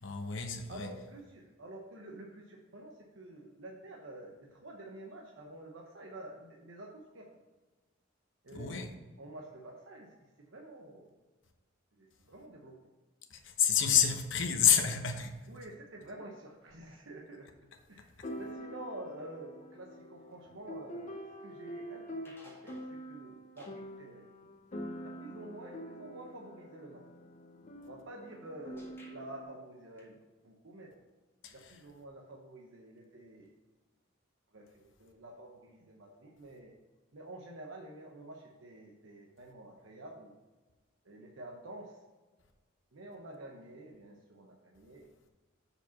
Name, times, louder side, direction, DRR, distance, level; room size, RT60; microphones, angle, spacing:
voice 1, 0.0-0.9 8.5-8.9 13.3-15.4 18.0-18.3 31.4-31.7, left 8 dB, 65° left, 0.9 m, -29 dB
voice 2, 0.7-7.3 8.4-8.9 9.2-11.2 11.9-12.8 15.5-17.5 17.9-24.3 25.0-27.0 27.9-30.2 30.4-31.0 31.5-33.5 34.5-36.7 37.1-40.4 41.0-42.0 42.9-45.1, right 1 dB, 70° right, 0.9 m, -49 dB
sound 1, 16.7-16.8 18.2-29.4, equal, 40° left, 0.8 m, -46 dB
sound 2, 22.2-23.1 23.6-23.9 28.8-29.2 30.0-30.4 33.4-33.6 33.8-33.9 35.1-35.2, equal, 10° left, 1.8 m, -59 dB
6.6 x 5.0 x 5.7 m
head